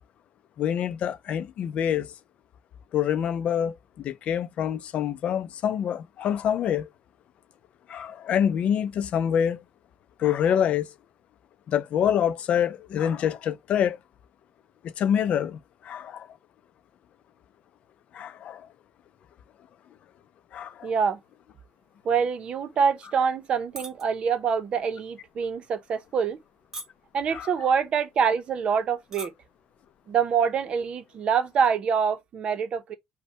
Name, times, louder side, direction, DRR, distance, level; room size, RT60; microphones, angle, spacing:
voice 1, 0.6-2.1 2.9-6.9 7.9-9.6 10.2-10.9 11.7-14.0 15.0-15.6 15.8-16.3 18.1-18.6 20.5-20.9 27.3-27.5, left 9 dB, 55° left, 0.5 m, -26 dB
voice 2, 20.8-21.2 22.0-26.4 27.1-29.3 30.1-32.9, right 6 dB, 45° right, 0.7 m, -25 dB
sound 1, 23.8-24.0 24.4-24.7 25.3-25.5 26.2-26.5 26.7-27.2 28.0-28.1 28.3-28.4 29.0-29.3 29.6-29.9, right 2 dB, 20° right, 1.2 m, -39 dB
5.5 x 2.2 x 4.3 m
cardioid pair, 170°, 3 cm